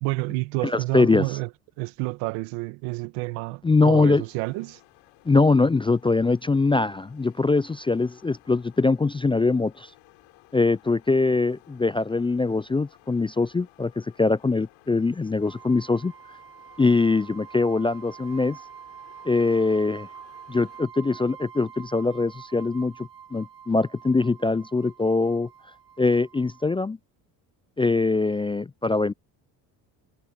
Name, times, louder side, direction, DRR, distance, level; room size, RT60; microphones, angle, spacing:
voice 1, 0.0-1.5 1.8-4.8, right 23 dB, 85° right, 1.6 m, -29 dB
voice 2, 0.7-1.3 3.6-4.2 5.3-9.9 10.5-16.1 16.8-18.6 19.2-20.1 20.5-25.5 26.0-27.0 27.8-29.1, left 3 dB, 10° left, 0.4 m, -22 dB
sound 1, 4.1-20.8, left 21 dB, 80° left, 7.0 m, -56 dB
sound 2, 15.4-26.8, right 8 dB, 60° right, 5.2 m, -46 dB
supercardioid pair, 60°, 46 cm